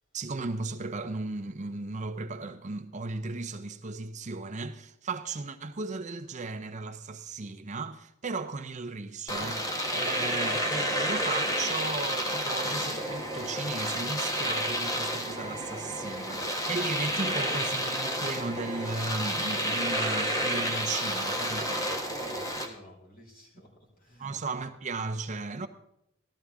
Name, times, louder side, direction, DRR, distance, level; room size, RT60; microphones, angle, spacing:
voice 1, 0.1-21.9 24.2-25.7, right 3 dB, 40° right, 0.7 m, -36 dB
Domestic sounds home sounds, 9.3-22.7, equal, 20° left, 1.3 m, -30 dB
voice 2, 22.0-24.3, equal, 50° left, 4.8 m, -51 dB
15.5 x 12.5 x 3.6 m
head